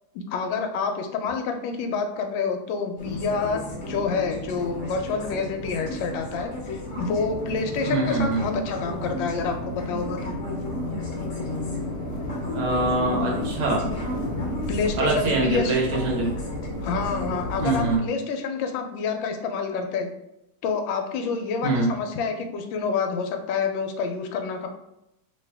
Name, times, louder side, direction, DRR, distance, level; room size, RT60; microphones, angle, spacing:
voice 1, 0.1-10.3 14.7-15.8 16.8-20.1 20.6-24.7, left 5 dB, 75° left, 4 dB, 1.2 m, -28 dB
sound 1, 3.0-18.0, left 1 dB, 55° left, 0.9 m, -32 dB
voice 2, 7.9-8.5 12.5-13.9 15.0-16.3 17.6-18.0 21.6-21.9, right 2 dB, 80° right, -2 dB, 1.9 m, -24 dB
3.5 x 3.0 x 3.3 m, 0.85 s
omnidirectional pair, 2.3 m